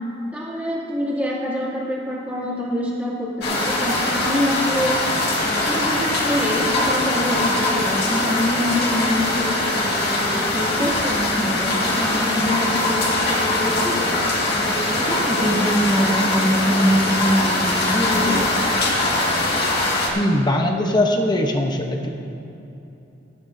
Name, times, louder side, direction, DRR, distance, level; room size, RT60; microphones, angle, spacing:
voice 1, 0.3-5.0 5.4-18.5, equal, 10° right, -6 dB, 2.6 m, -24 dB
sound 1, 3.4-20.1, left 2 dB, 60° left, 2.1 m, -22 dB
voice 2, 20.1-22.1, left 1 dB, 25° left, 2 dB, 1.0 m, -20 dB
16.5 x 14.0 x 2.8 m, 2.9 s
head